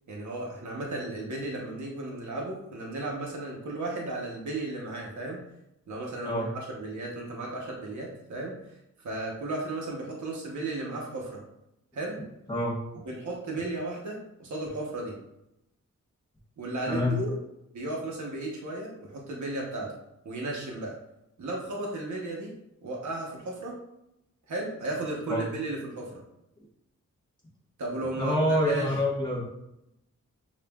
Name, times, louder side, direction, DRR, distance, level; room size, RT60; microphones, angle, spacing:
voice 1, 0.1-5.4 5.9-8.8 9.0-11.4 11.9-12.2 13.0-15.1 16.6-17.3 17.7-19.9 20.2-20.9 21.4-22.5 22.8-23.8 24.5-26.2 27.8-28.9, right 2 dB, 70° right, -2 dB, 0.9 m, -34 dB
voice 2, 12.5-13.0 16.9-17.2 25.3-25.4 28.2-29.5, left 1 dB, 15° left, -5 dB, 1.0 m, -27 dB
7.1 x 2.5 x 2.3 m, 0.83 s
wide cardioid pair, 170°, 30 cm